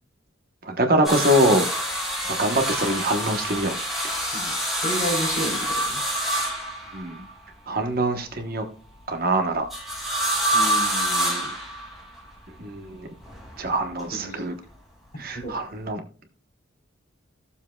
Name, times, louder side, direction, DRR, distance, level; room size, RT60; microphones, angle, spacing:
voice 1, 0.7-1.7 2.3-3.7 6.9-7.2 7.7-8.6 9.1-9.6 12.6-13.1 13.6-14.5 15.2-16.0, right 1 dB, 50° right, 5 dB, 1.1 m, -23 dB
sound 1, 1.0-7.3 9.7-12.2 13.2-14.0 15.4-15.5, right 1 dB, ahead, 2.4 m, -26 dB
voice 2, 4.3-6.0 10.5-11.5 14.1-14.4 15.3-15.5, equal, 45° left, 0 dB, 4.0 m, -32 dB
15.0 x 7.2 x 2.3 m, 0.38 s
head